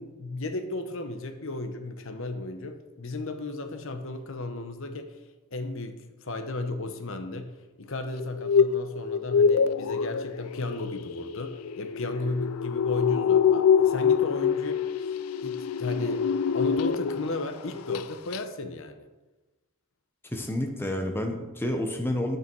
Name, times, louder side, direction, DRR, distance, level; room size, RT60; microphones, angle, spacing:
voice 1, 0.0-5.2 5.5-14.9 15.4-19.1, left 2 dB, 65° left, 7 dB, 1.0 m, -34 dB
sound 1, 8.2-17.4 17.7-18.1 18.3-18.4, left 7 dB, 85° left, 0.4 m, -25 dB
voice 2, 20.2-22.4, left 1 dB, 10° left, 3 dB, 1.1 m, -29 dB
11.5 x 9.0 x 4.7 m, 1.1 s
head